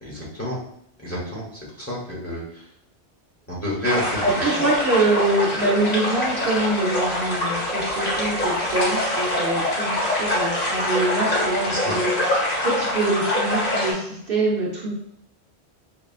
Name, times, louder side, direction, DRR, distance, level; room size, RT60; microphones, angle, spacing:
voice 1, 0.0-0.6 1.0-1.5 1.8-2.6 3.5-4.2 11.7-11.9, left 1 dB, 15° left, -6 dB, 1.1 m, -29 dB
sound 1, 3.8-13.9, left 1 dB, 50° left, 1.6 m, -24 dB
voice 2, 4.2-12.2 12.4-14.9, right 2 dB, 60° right, -3 dB, 1.0 m, -24 dB
5.6 x 2.3 x 2.4 m, 0.75 s
omnidirectional pair, 1.1 m